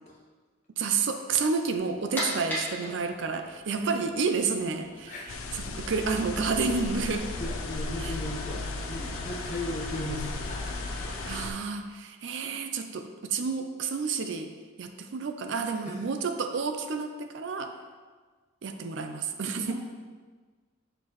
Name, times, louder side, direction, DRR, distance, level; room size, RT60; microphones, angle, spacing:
voice 1, 0.8-5.1 5.5-7.3 8.0-8.1 11.3-14.5 14.8-17.8 18.6-19.7, right 5 dB, 60° right, 7 dB, 0.4 m, -30 dB
sound 1, 1.8-11.5, equal, 10° left, 1.3 m, -40 dB
sound 2, 5.3-11.5, left 3 dB, 85° left, 0.4 m, -36 dB
voice 2, 7.4-10.8 15.8-16.0 19.6-19.7, left 1 dB, 35° left, -5 dB, 1.4 m, -36 dB
7.5 x 4.5 x 3.0 m, 1.4 s
head